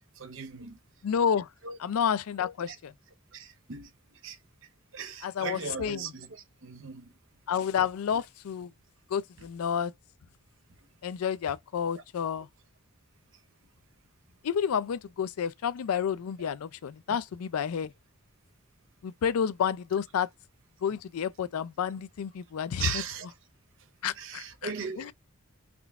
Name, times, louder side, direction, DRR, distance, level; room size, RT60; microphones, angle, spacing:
voice 1, 0.2-0.8 1.6-1.8 2.7-2.8 3.3-3.9 4.2-4.4 4.9-7.1 11.9-12.0 12.3-12.4 17.1-17.2 22.8-23.3 24.2-25.1, right 6 dB, 60° right, 0.7 m, -38 dB
voice 2, 1.0-1.5 1.8-2.9 5.2-6.1 7.5-8.7 9.1-9.9 11.0-12.5 14.4-17.9 19.0-20.3 20.8-22.9 24.0-24.7 25.0-25.1, left 7 dB, 85° left, 0.4 m, -30 dB
3.6 x 2.3 x 3.4 m
head